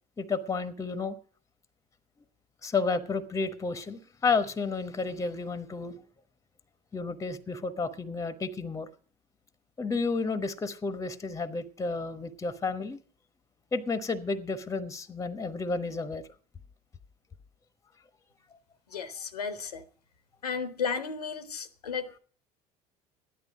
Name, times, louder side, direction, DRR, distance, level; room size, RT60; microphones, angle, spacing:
voice 1, 0.2-1.2 2.6-6.0 6.9-8.9 9.8-13.0 13.7-16.2, left 4 dB, 15° left, 1.0 m, -31 dB
voice 2, 18.9-19.8 20.4-22.2, left 6 dB, 75° left, 0.9 m, -34 dB
13.5 x 11.0 x 5.0 m
figure-of-eight pair, 65°, 20 cm